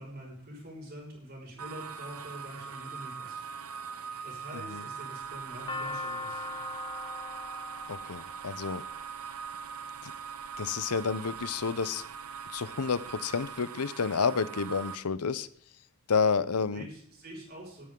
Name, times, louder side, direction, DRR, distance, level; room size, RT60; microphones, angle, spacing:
voice 1, 0.0-3.4 4.2-6.6 16.7-17.8, right 1 dB, 45° right, -2 dB, 5.8 m, -45 dB
sound 1, 1.6-14.9, right 6 dB, 85° right, 1.1 m, -41 dB
sound 2, 5.2-9.5 10.3-10.8 11.4-12.0 12.4-12.5 12.6-13.5, left 3 dB, 20° left, 0.6 m, -40 dB
voice 2, 7.9-8.8 10.0-10.1 10.6-12.0 12.5-15.5 16.1-16.9, left 5 dB, 90° left, 16 dB, 0.7 m, -30 dB
18.5 x 10.0 x 3.8 m, 0.67 s
head